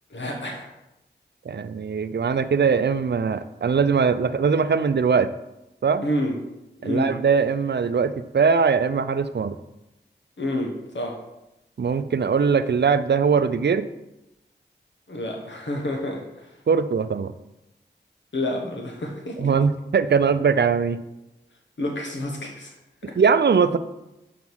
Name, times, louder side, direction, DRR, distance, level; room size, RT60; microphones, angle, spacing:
voice 1, 0.1-0.7 6.0-6.4 6.8-7.2 10.4-11.2 15.1-16.6 18.3-19.5 21.8-22.7, left 1 dB, 85° left, 1 dB, 1.3 m, -29 dB
voice 2, 1.5-5.3 5.8-6.1 6.8-9.6 11.8-13.9 16.7-17.3 19.4-21.0 23.2-23.8, right 5 dB, 65° right, 12 dB, 0.5 m, -21 dB
7.1 x 5.0 x 6.2 m, 0.94 s
wide cardioid pair, 80°, 19 cm